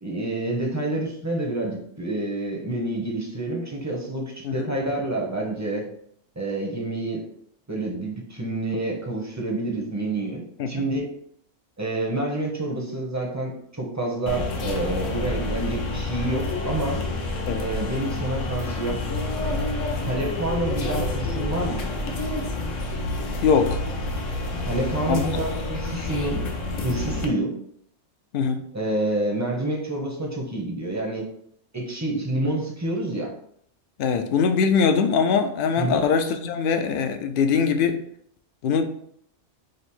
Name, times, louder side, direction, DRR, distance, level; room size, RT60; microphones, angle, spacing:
voice 1, 0.0-5.9 6.4-7.2 7.7-11.1 11.8-17.0 17.6-19.0 20.0-21.9 24.6-26.5 26.8-27.5 28.7-31.3 31.7-33.3 35.8-36.0, right 2 dB, 20° right, -1 dB, 0.6 m, -28 dB
sound 1, 14.3-27.3, left 2 dB, 85° left, 1.1 m, -28 dB
voice 2, 23.4-23.8 25.1-25.3 28.3-28.6 34.0-38.0 38.6-38.9, left 6 dB, 60° left, 7 dB, 0.6 m, -22 dB
5.1 x 2.0 x 4.3 m, 0.67 s
omnidirectional pair, 1.3 m